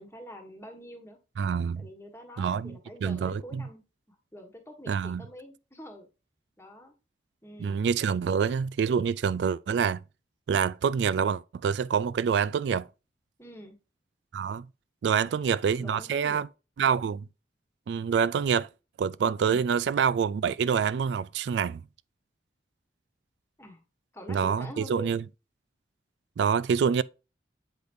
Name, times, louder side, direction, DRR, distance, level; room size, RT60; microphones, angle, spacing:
voice 1, 0.0-1.2 1.5-3.8 4.1-6.1 6.6-6.9 7.4-7.8 8.3-8.4 13.4-13.8 15.1-16.4 19.4-19.6 23.6-23.8 24.1-25.1, equal, 15° left, 1.4 m, -46 dB
voice 2, 1.4-1.9 2.4-3.6 4.9-5.2 7.6-10.0 10.5-12.9 14.3-14.7 15.0-16.5 16.8-17.2 17.9-18.7 19.0-21.8 24.3-25.2 26.4-27.0, right 7 dB, 80° right, 0.3 m, -26 dB
7.9 x 5.1 x 2.6 m
head